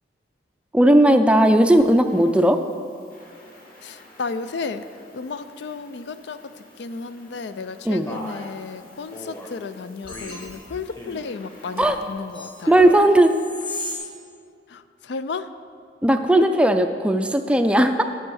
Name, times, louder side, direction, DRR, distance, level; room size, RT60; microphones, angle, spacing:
voice 1, 0.7-2.6 7.9-8.1 11.8-12.0 12.7-13.3 16.0-18.0, right 1 dB, 5° right, 7 dB, 0.4 m, -16 dB
sound 1, 1.3-14.0, left 2 dB, 50° left, 2.1 m, -42 dB
voice 2, 3.8-4.9 5.1-12.7 14.7-15.5, left 4 dB, 70° left, 12 dB, 0.4 m, -33 dB
Male speech man speaking, 8.1-8.5 9.1-9.5 10.1-10.5 10.9-11.3 11.7-12.2 12.6-13.0, equal, 15° left, 0.9 m, -37 dB
10.0 x 7.2 x 6.3 m, 2.3 s
head